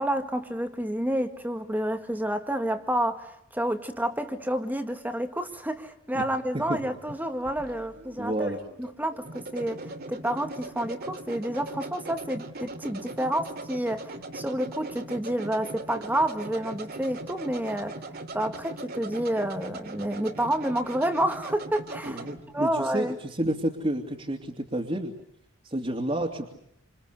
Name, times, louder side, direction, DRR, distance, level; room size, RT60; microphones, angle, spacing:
voice 1, 0.0-8.5 8.8-18.0 18.3-22.2 22.5-23.2, right 1 dB, 10° right, 7 dB, 1.9 m, -29 dB
sound 1, 7.1-22.4, right 2 dB, 50° right, 2.7 m, -40 dB
voice 2, 8.2-8.6 22.1-25.1 25.6-26.5, right 1 dB, 25° right, -1 dB, 2.8 m, -30 dB
28.5 x 28.0 x 6.7 m, 0.74 s
head